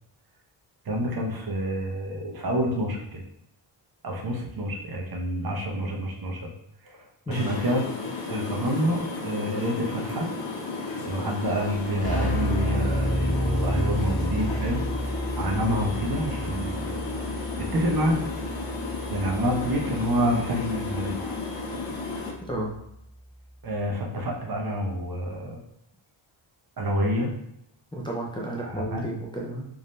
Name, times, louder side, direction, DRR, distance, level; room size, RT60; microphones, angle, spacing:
voice 1, 0.8-3.2 4.0-6.5 6.8-7.9 8.1-10.3 11.0-14.8 15.3-17.2 17.6-18.2 19.1-21.2 23.6-25.6 26.8-27.3 28.6-29.0, equal, 45° right, 0 dB, 0.8 m, -28 dB
sound 1, 7.3-22.3, left 3 dB, 65° left, 1.0 m, -34 dB
Keyboard (musical), 12.0-22.3, equal, 90° left, 1.2 m, -31 dB
voice 2, 22.4-22.7 27.9-29.7, right 1 dB, 10° left, -4 dB, 0.5 m, -32 dB
3.7 x 2.6 x 3.1 m, 0.79 s
wide cardioid pair, 115°, 50 cm